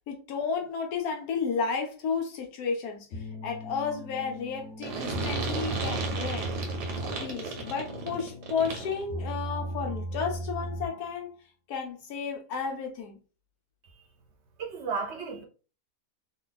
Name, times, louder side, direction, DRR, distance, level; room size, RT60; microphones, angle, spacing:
voice 1, 0.1-6.5 7.0-11.3 11.7-13.2, left 5 dB, 75° left, 1.2 m, -32 dB
sound 1, 3.1-11.2, equal, 50° left, 0.8 m, -37 dB
sound 2, 4.8-9.0, right 3 dB, 90° right, 1.4 m, -34 dB
voice 2, 14.6-15.4, right 5 dB, 55° right, 0.9 m, -34 dB
3.3 x 2.3 x 3.8 m
omnidirectional pair, 1.7 m